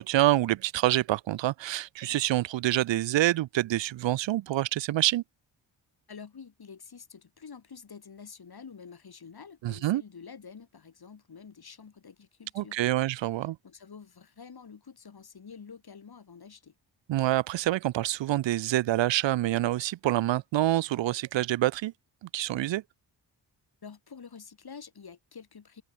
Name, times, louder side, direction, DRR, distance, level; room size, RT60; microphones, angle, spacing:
voice 1, 0.0-5.2 9.6-10.0 12.6-13.6 17.1-21.9 22.2-22.8, right 15 dB, 75° right, 0.6 m, -26 dB
voice 2, 6.1-13.1 13.6-16.7 23.8-25.8, left 6 dB, 55° left, 7.4 m, -48 dB
cardioid pair, 65°, 45 cm